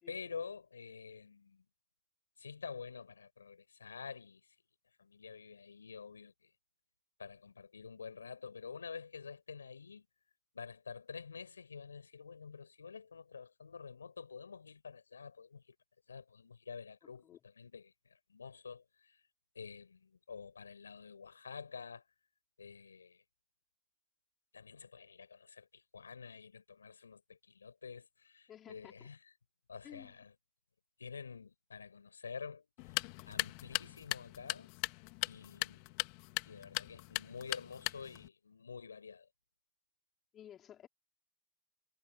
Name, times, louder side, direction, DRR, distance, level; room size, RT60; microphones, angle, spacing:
voice 1, 0.1-1.6 2.4-4.6 5.0-6.5 7.2-10.1 10.5-15.8 16.1-19.2 19.5-22.1 22.6-23.2 24.5-29.2 29.7-30.3 31.0-33.0 33.3-34.7 35.2-35.9 36.4-39.3, left 5 dB, 90° left, 5.8 m, -49 dB
voice 2, 17.0-17.4 28.5-29.1 29.8-30.2 40.3-40.9, left 10 dB, 40° left, 4.5 m, -54 dB
sound 1, 32.8-38.3, left 30 dB, 60° left, 1.8 m, -40 dB
hypercardioid pair, 75°, 0 cm